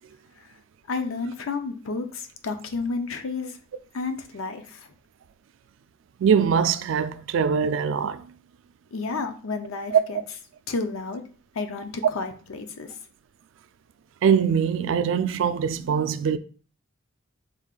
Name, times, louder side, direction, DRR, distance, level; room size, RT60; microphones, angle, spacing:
voice 1, 0.9-3.6 3.9-4.9 8.9-10.2 10.7-11.2 11.5-13.0, left 4 dB, 90° left, 0.6 m, -31 dB
voice 2, 6.2-8.3 9.9-10.0 14.2-16.4, right 7 dB, 65° right, 0.3 m, -22 dB
4.5 x 2.4 x 3.7 m
head